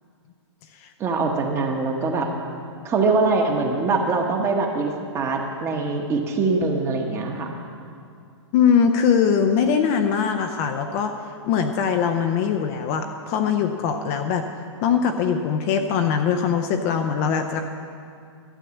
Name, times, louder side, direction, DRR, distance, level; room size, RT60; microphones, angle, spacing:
voice 1, 1.0-2.3 2.8-7.6, right 3 dB, 15° right, 3 dB, 1.1 m, -23 dB
voice 2, 8.5-11.1 11.4-14.5 14.8-17.6, left 7 dB, 30° left, 5 dB, 0.6 m, -21 dB
12.5 x 8.4 x 7.1 m, 2.3 s
hypercardioid pair, 150°, 15 cm